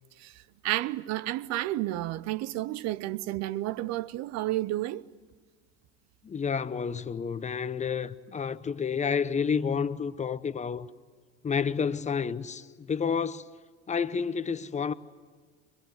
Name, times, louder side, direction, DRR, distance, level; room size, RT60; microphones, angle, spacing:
voice 1, 0.6-5.1, right 16 dB, 50° right, 0.8 m, -31 dB
voice 2, 6.2-10.9 11.4-13.5 13.9-14.9, left 6 dB, 20° left, 0.8 m, -30 dB
24.0 x 21.5 x 9.5 m
hypercardioid pair, 85°, 34 cm